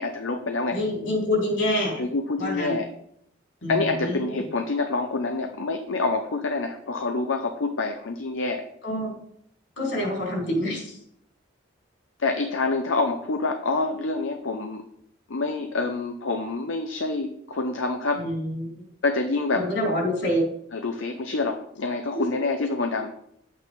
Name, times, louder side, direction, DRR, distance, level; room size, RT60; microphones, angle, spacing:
voice 1, 0.0-0.8 2.0-2.9 3.7-8.7 12.2-14.8 15.3-18.3 19.0-19.7 20.7-23.2, left 3 dB, 85° left, 6 dB, 0.8 m, -27 dB
voice 2, 0.7-2.0 2.4-2.8 3.6-4.4 8.8-9.2 9.8-11.0 18.2-18.8 19.5-20.5, left 1 dB, 65° left, -2 dB, 4.2 m, -26 dB
10.5 x 8.7 x 3.7 m, 0.73 s
head